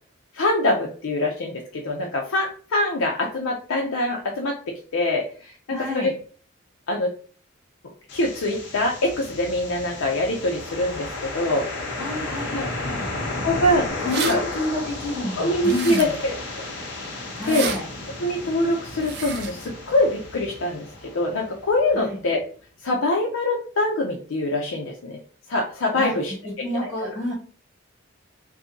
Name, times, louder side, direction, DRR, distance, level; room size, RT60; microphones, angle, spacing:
voice 1, 0.3-5.5 5.8-6.1 6.9-7.1 8.1-12.0 12.5-12.7 13.4-14.4 15.4-16.6 17.0-17.7 18.2-22.4 22.8-25.2 25.5-26.3 26.8-26.9, left 1 dB, 80° left, 1 dB, 0.5 m, -24 dB
voice 2, 5.7-6.1 12.0-13.1 14.0-16.1 17.4-17.9 21.9-22.2 26.0-26.1 26.4-27.3, left 1 dB, 10° right, -11 dB, 1.4 m, -29 dB
sound 1, 8.1-22.0, left 2 dB, 55° left, 0.8 m, -33 dB
sound 2, 14.1-14.3 15.6-16.3 17.4-17.8 19.0-19.5, right 5 dB, 50° right, 0.5 m, -30 dB
2.6 x 2.5 x 3.7 m, 0.42 s
head